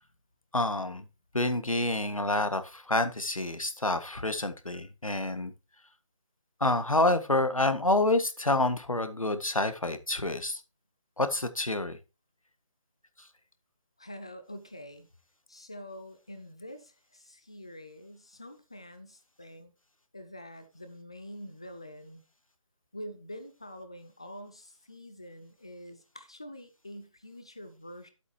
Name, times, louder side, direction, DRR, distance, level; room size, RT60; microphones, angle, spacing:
voice 1, 0.5-1.0 1.3-5.5 6.6-10.6 11.2-12.0, left 2 dB, 85° left, 1.6 m, -28 dB
voice 2, 14.0-15.1 15.5-19.7 20.1-22.2 22.9-28.1, equal, 10° left, 0.4 m, -46 dB
11.0 x 8.2 x 2.9 m
figure-of-eight pair, 155°, 17 cm